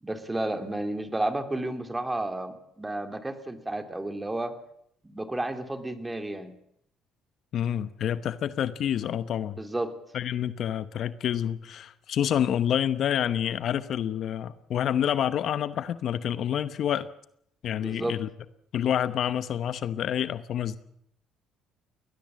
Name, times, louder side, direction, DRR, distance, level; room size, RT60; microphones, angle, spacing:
voice 1, 0.0-4.6 5.0-6.5 9.6-9.9 17.8-18.2, right 1 dB, 15° right, 7 dB, 2.8 m, -32 dB
voice 2, 7.5-9.6 10.1-17.1 17.6-18.3 18.7-20.8, left 10 dB, 60° left, 14 dB, 0.9 m, -28 dB
21.5 x 19.0 x 7.6 m, 0.73 s
supercardioid pair, 75°, 0 cm